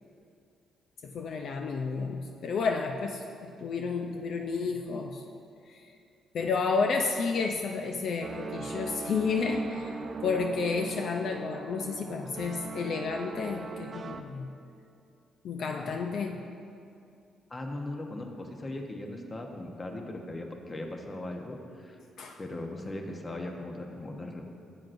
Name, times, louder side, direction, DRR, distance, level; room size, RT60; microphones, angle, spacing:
voice 1, 1.0-5.2 5.7-5.8 6.3-14.5 15.4-16.4 22.2-22.4, left 4 dB, 65° left, 3 dB, 0.5 m, -31 dB
sound 1, 8.2-14.2, right 4 dB, 45° right, 0.6 m, -39 dB
voice 2, 17.5-22.0 22.4-24.4, left 1 dB, 30° left, 2 dB, 1.0 m, -39 dB
12.0 x 7.8 x 2.6 m, 2.5 s
cardioid pair, 90°, 0 cm